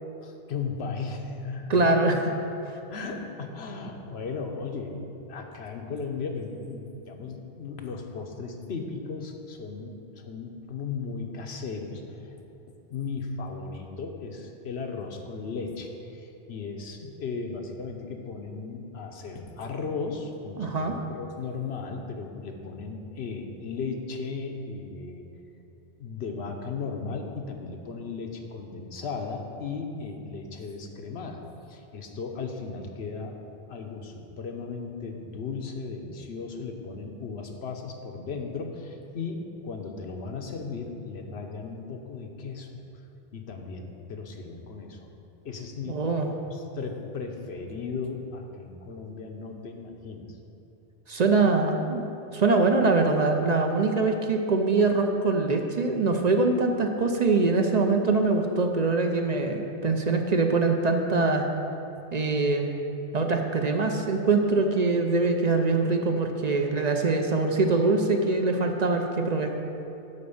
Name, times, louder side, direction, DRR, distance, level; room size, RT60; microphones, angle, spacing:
voice 1, 0.2-1.8 2.9-12.3 12.9-25.3 26.0-31.4 31.7-33.4 33.7-42.8 43.3-45.1 45.4-46.0 46.4-50.2, left 4 dB, 90° left, 3 dB, 1.1 m, -36 dB
voice 2, 1.7-2.3 2.7-2.8 20.6-21.0 45.9-46.3 51.1-52.1 52.3-61.5 62.1-62.7 63.1-69.5, right 3 dB, 45° right, 4 dB, 0.7 m, -23 dB
10.5 x 4.3 x 7.1 m, 2.9 s
omnidirectional pair, 1.0 m